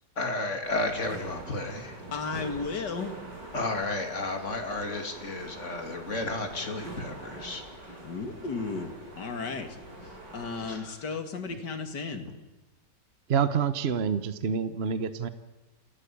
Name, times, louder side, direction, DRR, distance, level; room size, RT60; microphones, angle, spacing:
voice 1, 0.2-2.0 3.5-8.0 10.7-11.0, left 2 dB, 40° left, 5 dB, 3.0 m, -33 dB
sound 1, 0.6-10.8, right 2 dB, 75° right, 6.1 m, -44 dB
voice 2, 2.1-3.1 8.0-9.8 10.3-12.3, left 4 dB, 70° left, 7 dB, 2.7 m, -34 dB
voice 3, 13.3-15.3, right 7 dB, 45° right, 12 dB, 1.0 m, -27 dB
28.5 x 16.5 x 8.6 m, 1.1 s
omnidirectional pair, 1.9 m